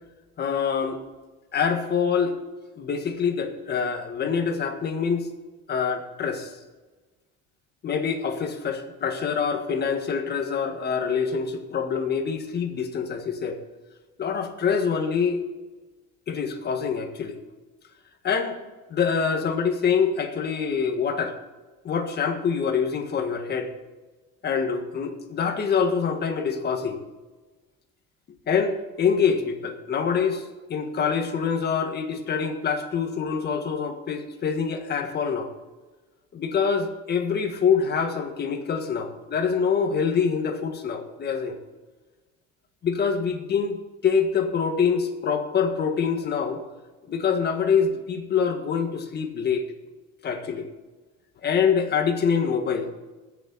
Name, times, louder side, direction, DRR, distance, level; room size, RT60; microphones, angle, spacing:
voice 1, 0.4-1.0 1.5-2.3 2.8-5.3 5.7-6.5 7.8-13.6 14.2-15.4 16.3-17.4 18.2-18.6 18.9-21.3 21.8-23.7 24.4-27.0 28.5-35.5 36.3-41.6 42.8-43.8 44.0-46.6 47.1-49.6 50.2-50.7 51.4-52.9, left 6 dB, 35° left, 5 dB, 1.6 m, -25 dB
19.5 x 7.2 x 4.1 m, 1.3 s
cardioid pair, 150°, 29 cm